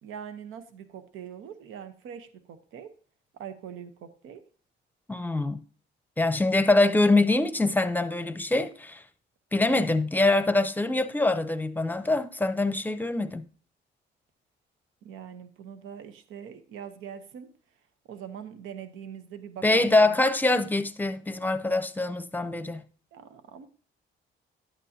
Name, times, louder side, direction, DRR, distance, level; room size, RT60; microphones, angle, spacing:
voice 1, 0.0-2.9 3.4-4.4 15.0-17.5 18.1-20.2 23.1-23.7, right 8 dB, 85° right, 0.9 m, -42 dB
voice 2, 5.1-5.6 6.2-9.0 9.5-13.4 19.6-22.8, left 2 dB, 10° left, 0.7 m, -24 dB
11.0 x 8.3 x 2.8 m
cardioid pair, 90°, 20 cm